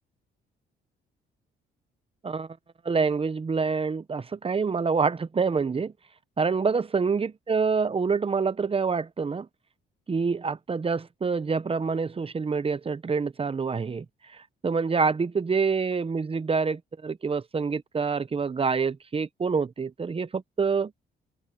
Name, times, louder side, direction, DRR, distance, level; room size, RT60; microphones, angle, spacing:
voice 1, 2.8-5.9 6.4-9.5 10.1-14.0 14.6-20.9, right 5 dB, 30° right, 1.0 m, -26 dB
open air
cardioid pair, 90°, 20 cm